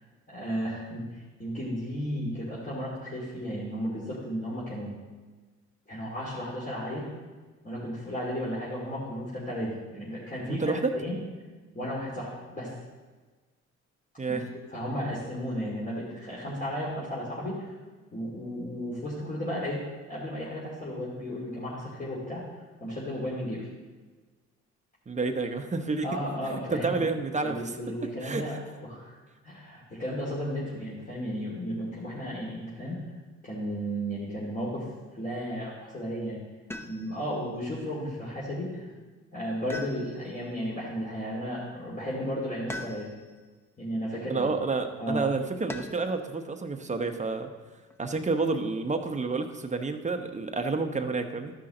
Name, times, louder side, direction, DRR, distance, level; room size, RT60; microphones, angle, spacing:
voice 1, 0.3-4.9 5.9-7.1 7.6-11.2 11.7-12.7 14.3-14.4 14.7-17.8 18.1-19.8 20.1-23.7 26.0-27.0 27.4-28.6 28.9-29.2 29.4-33.0 33.4-34.9 35.1-36.4 36.9-38.9 39.3-43.1 43.8-44.5 45.0-45.3, equal, 25° left, -7 dB, 2.6 m, -34 dB
voice 2, 10.5-10.9 14.2-14.4 25.1-26.2 26.7-27.8 28.2-28.4 44.3-47.5 48.0-51.5, right 3 dB, 25° right, 6 dB, 0.9 m, -29 dB
sound 1, 36.7-37.3 39.7-40.5 42.7-43.4 45.7-46.2 47.9-48.5, left 1 dB, 10° left, 0.8 m, -41 dB
13.5 x 5.7 x 3.8 m, 1.3 s
cardioid pair, 90°, 30 cm